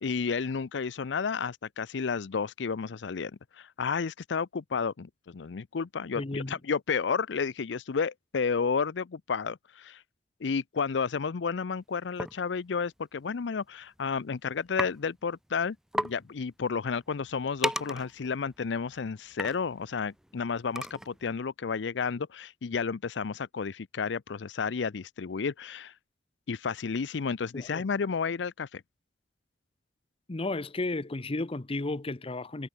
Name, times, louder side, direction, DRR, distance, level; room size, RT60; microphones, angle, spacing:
voice 1, 0.0-10.0 10.4-25.9 26.5-28.8, left 5 dB, 80° left, 0.5 m, -31 dB
voice 2, 6.1-6.5 27.5-27.8 30.3-32.7, left 2 dB, 30° left, 0.8 m, -33 dB
sound 1, 12.2-12.4 13.4-13.6 14.0-14.3 14.8-14.9 15.3-15.4 15.6-15.7 15.9-16.2 16.6-21.3, right 1 dB, 5° right, 0.5 m, -35 dB
head